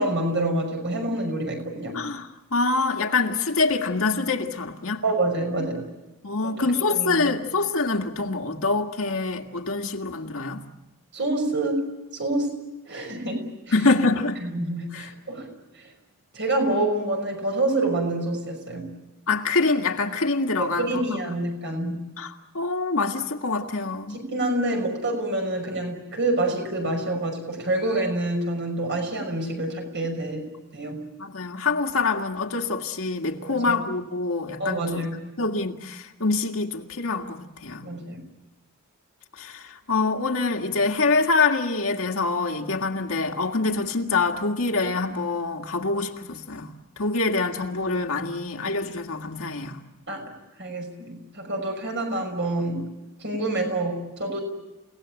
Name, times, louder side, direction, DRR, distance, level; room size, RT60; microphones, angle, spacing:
voice 1, 0.0-2.0 5.0-5.9 6.4-7.3 11.1-11.9 12.1-12.5 12.9-13.7 14.4-15.5 15.8-15.9 16.3-18.9 20.6-22.1 24.1-30.5 30.7-31.0 33.5-33.8 34.6-35.2 37.8-38.2 50.1-50.3 50.6-52.9 53.2-54.4, right 2 dB, 55° right, 6.0 m, -27 dB
voice 2, 1.9-5.0 6.2-10.6 13.7-14.4 14.9-15.1 19.3-21.2 22.2-24.2 31.2-35.1 35.4-37.9 39.4-49.8, left 3 dB, 70° left, 1.9 m, -25 dB
30.0 x 18.0 x 8.9 m
head